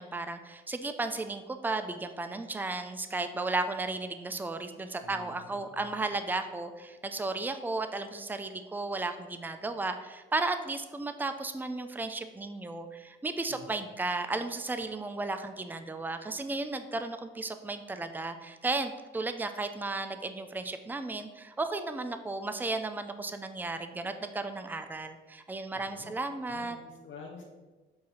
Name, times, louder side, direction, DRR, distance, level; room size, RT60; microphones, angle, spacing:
voice 1, 0.0-26.8, right 3 dB, 10° right, 8 dB, 0.5 m, -34 dB
voice 2, 5.0-6.1 13.5-13.8 25.7-26.1 26.5-27.4, left 5 dB, 75° left, 0 dB, 1.1 m, -49 dB
7.7 x 2.8 x 5.5 m, 1.2 s
cardioid pair, 90°, 20 cm